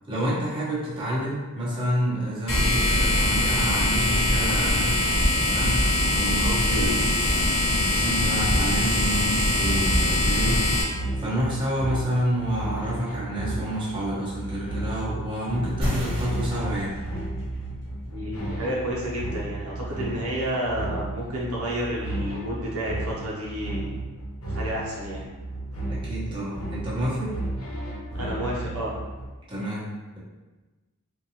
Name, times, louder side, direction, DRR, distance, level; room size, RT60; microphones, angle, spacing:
voice 1, 0.1-4.9 5.4-5.8 6.1-7.5 7.8-10.6 11.2-17.0 25.9-27.4 29.5-30.2, equal, 25° right, -9 dB, 1.0 m, -29 dB
sound 1, 2.5-10.8, left 1 dB, 25° left, 1.2 m, -22 dB
sound 2, 9.4-29.3, right 2 dB, 65° left, 1.0 m, -34 dB
sound 3, 15.8-20.9, left 1 dB, 40° right, 1.3 m, -35 dB
voice 2, 18.1-23.9 24.5-25.2 28.1-29.0, equal, 75° right, -5 dB, 0.9 m, -31 dB
3.9 x 2.6 x 2.9 m, 1.2 s
head